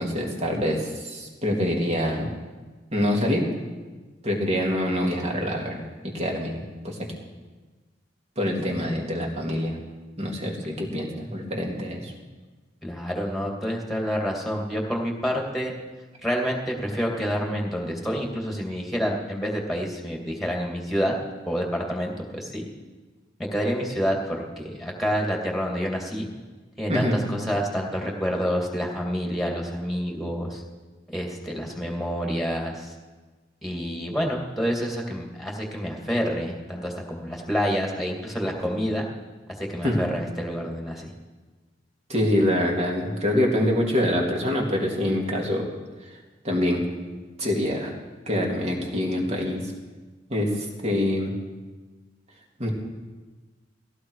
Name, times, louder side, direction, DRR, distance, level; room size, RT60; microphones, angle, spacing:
voice 1, 0.0-2.3 2.9-3.5 4.2-7.1 8.4-9.8 10.2-12.1 26.9-27.2 39.8-40.0 42.1-45.7 46.4-46.8 47.4-47.9 48.3-49.7 50.3-51.3 52.6-52.7, left 1 dB, 35° right, -1 dB, 2.9 m, -25 dB
voice 2, 8.6-9.0 12.8-15.7 16.2-21.1 21.5-22.7 23.4-26.3 26.8-30.6 31.1-32.9 33.6-39.0 39.5-41.1, equal, ahead, 0 dB, 2.6 m, -28 dB
18.5 x 15.5 x 4.9 m, 1.3 s
head